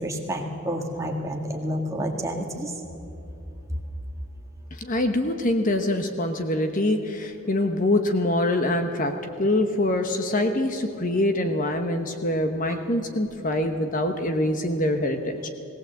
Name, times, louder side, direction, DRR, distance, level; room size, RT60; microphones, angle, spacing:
voice 1, 0.0-2.7, equal, 15° right, 1 dB, 1.8 m, -29 dB
voice 2, 4.8-15.5, left 1 dB, 40° left, 6 dB, 1.0 m, -24 dB
18.5 x 18.0 x 7.8 m, 2.8 s
head